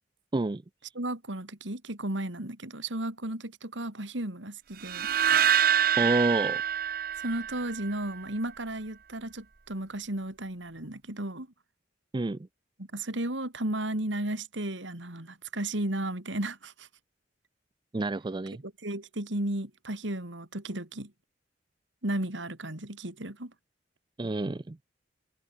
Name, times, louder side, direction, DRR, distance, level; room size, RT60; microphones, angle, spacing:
voice 1, 1.0-5.1 7.1-11.5 12.8-16.9 18.6-21.1 22.0-23.5, right 1 dB, 80° right, 3.6 m, -34 dB
sound 1, 4.8-8.0, right 9 dB, 50° right, 1.0 m, -26 dB
voice 2, 6.0-6.6 12.1-12.4 17.9-18.6 24.2-24.8, right 2 dB, 25° right, 0.4 m, -28 dB
head